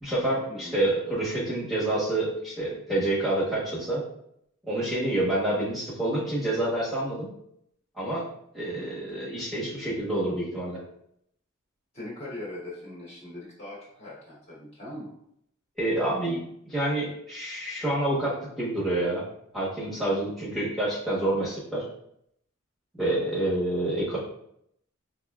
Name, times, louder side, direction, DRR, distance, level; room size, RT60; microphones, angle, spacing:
voice 1, 0.0-4.0 4.7-7.3 8.0-8.2 8.5-10.8 15.8-16.4 16.7-19.2 19.5-21.8 23.0-24.2, right 1 dB, ahead, -8 dB, 1.1 m, -28 dB
voice 2, 11.9-15.1, left 1 dB, 30° left, -6 dB, 1.2 m, -40 dB
4.7 x 2.6 x 2.3 m, 0.72 s
head